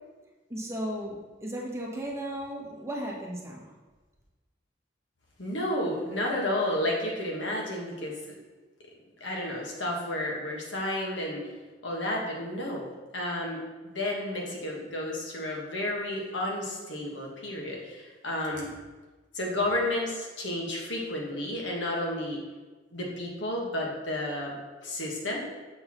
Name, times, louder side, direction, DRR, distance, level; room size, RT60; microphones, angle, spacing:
voice 1, 0.5-3.7, right 1 dB, 15° right, -2 dB, 1.0 m, -35 dB
voice 2, 5.4-8.3 9.2-11.5 11.8-12.9 13.1-18.7 19.3-22.4 22.9-25.4, left 1 dB, 75° left, -1 dB, 1.4 m, -31 dB
6.7 x 6.2 x 3.0 m, 1.3 s
head